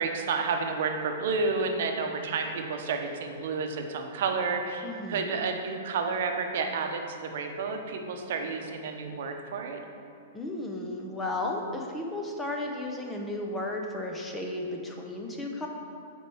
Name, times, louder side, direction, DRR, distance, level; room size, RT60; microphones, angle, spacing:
voice 1, 0.0-9.8, right 4 dB, 55° right, 4 dB, 0.8 m, -30 dB
voice 2, 4.8-5.3 10.3-15.7, left 2 dB, 5° left, 1 dB, 0.6 m, -34 dB
7.3 x 4.6 x 6.2 m, 2.4 s
supercardioid pair, 175°, 0 cm